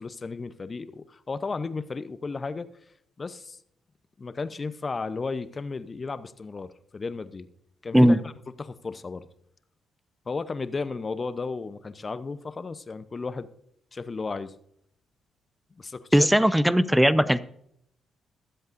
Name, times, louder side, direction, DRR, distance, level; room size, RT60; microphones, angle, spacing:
voice 1, 0.0-2.7 3.2-3.6 4.2-7.5 7.8-8.3 8.6-9.3 10.3-13.5 13.9-14.5 15.8-16.3, left 4 dB, 40° left, 13 dB, 0.8 m, -34 dB
voice 2, 16.1-17.4, equal, 5° right, 15 dB, 0.8 m, -18 dB
22.0 x 7.9 x 2.6 m, 0.73 s
hypercardioid pair, 45°, 0 cm